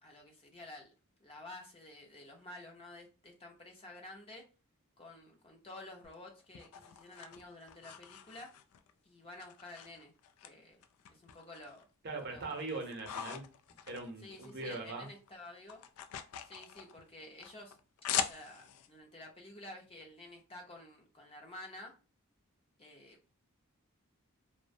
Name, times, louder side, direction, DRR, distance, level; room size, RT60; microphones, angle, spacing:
voice 1, 0.0-0.9 1.2-4.4 5.0-8.5 9.0-10.1 10.4-10.8 11.1-11.9 12.3-12.8 14.2-15.8 16.4-17.8 18.2-21.9 22.8-23.3, left 1 dB, 25° left, 1 dB, 0.5 m, -51 dB
sound 1, 6.0-8.9 9.4-10.5 10.8-11.8 12.2-14.8 15.1-18.9, left 8 dB, 80° left, 0.3 m, -42 dB
voice 2, 12.0-13.5 13.9-15.1, right 3 dB, 50° right, 3 dB, 0.6 m, -41 dB
2.6 x 2.1 x 2.5 m, 0.33 s
head